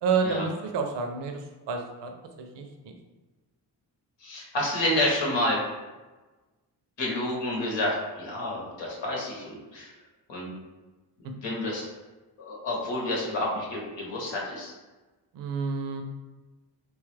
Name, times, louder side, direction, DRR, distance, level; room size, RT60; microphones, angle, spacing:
voice 1, 0.0-2.1 2.4-2.9 15.3-16.0, right 5 dB, 80° right, 4 dB, 0.6 m, -29 dB
voice 2, 4.2-5.6 7.0-9.9 10.3-10.5 11.4-11.8 12.4-14.7, left 1 dB, 90° left, -2 dB, 1.0 m, -29 dB
3.0 x 2.3 x 3.2 m, 1.2 s
cardioid pair, 80°, 43 cm